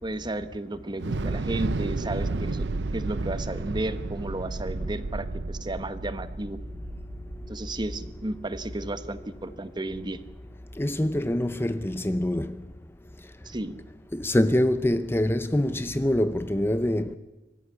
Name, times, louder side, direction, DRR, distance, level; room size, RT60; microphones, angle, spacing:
voice 1, 0.0-6.6 7.5-10.2 13.4-13.7, right 2 dB, 25° right, 1.2 m, -33 dB
Thunder / Explosion, 1.0-9.2, right 3 dB, 80° right, 0.7 m, -32 dB
voice 2, 10.8-12.6 14.1-17.2, left 1 dB, 15° left, 0.6 m, -25 dB
24.5 x 14.5 x 9.7 m
head